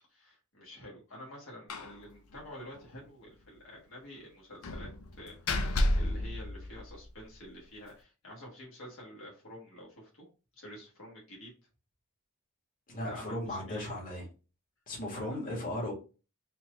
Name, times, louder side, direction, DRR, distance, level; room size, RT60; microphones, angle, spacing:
voice 1, 0.1-10.3 10.5-11.5 13.1-13.8 15.1-15.4, equal, 70° left, 1.5 m, -49 dB
Slam, 1.7-2.0 2.3-2.4 2.7-2.8 4.6-7.2, left 1 dB, 85° left, 0.5 m, -32 dB
voice 2, 12.9-14.2 14.9-15.9, left 1 dB, 40° left, 1.7 m, -36 dB
4.4 x 2.5 x 3.0 m
head